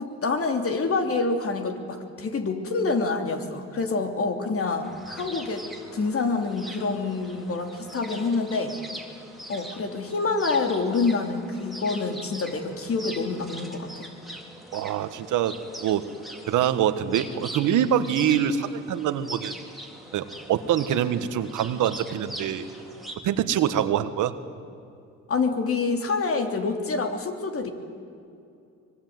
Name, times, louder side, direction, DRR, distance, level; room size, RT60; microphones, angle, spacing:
voice 1, 0.0-5.7 5.9-8.7 9.5-14.1 25.3-27.7, left 4 dB, 50° left, 5 dB, 3.1 m, -27 dB
sound 1, 4.8-23.2, right 1 dB, ahead, 3.7 m, -42 dB
voice 2, 14.7-16.0 16.5-19.5 20.1-22.6 23.2-24.3, right 10 dB, 85° right, 11 dB, 1.5 m, -25 dB
24.0 x 22.5 x 9.5 m, 2.5 s
cardioid pair, 90°, 30 cm